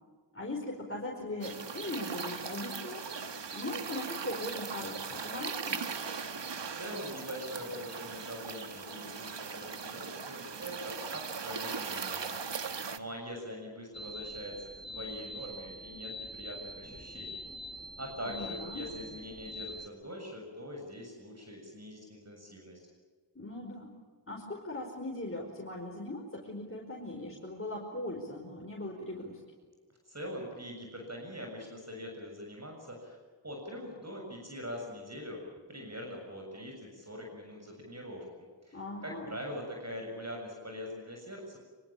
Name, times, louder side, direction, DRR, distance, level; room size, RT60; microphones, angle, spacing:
voice 1, 0.3-3.0 3.5-5.9 18.2-18.9 23.3-23.9 24.3-29.4 38.7-39.4, left 2 dB, 30° left, -1 dB, 5.1 m, -39 dB
sound 1, 1.4-13.0, right 5 dB, 75° right, 1.6 m, -39 dB
voice 2, 6.7-12.4 12.9-17.4 18.0-22.8 30.1-33.2 33.4-35.4 35.7-41.6, equal, 35° right, 1 dB, 7.0 m, -43 dB
sound 2, 13.9-19.9, left 1 dB, 10° left, 1.9 m, -44 dB
25.0 x 24.0 x 8.7 m, 1.5 s
wide cardioid pair, 70°, 43 cm